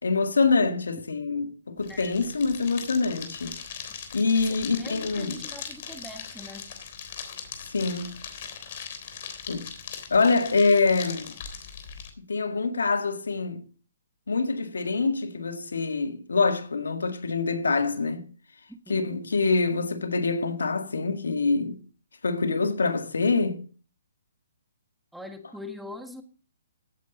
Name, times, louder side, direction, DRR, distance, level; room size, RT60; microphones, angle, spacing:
voice 1, 0.0-3.5 4.1-5.4 7.7-8.1 9.5-9.6 10.1-11.3 12.2-13.6 14.3-18.3 18.9-21.8 22.2-23.6, left 4 dB, 90° left, 1.8 m, -25 dB
sound 1, 1.8-12.1, left 7 dB, 50° left, 3.5 m, -40 dB
voice 2, 1.9-2.2 4.5-6.6 18.9-19.0 25.1-26.2, left 1 dB, ahead, 1.6 m, -42 dB
16.5 x 9.1 x 4.0 m
hypercardioid pair, 145°, 0 cm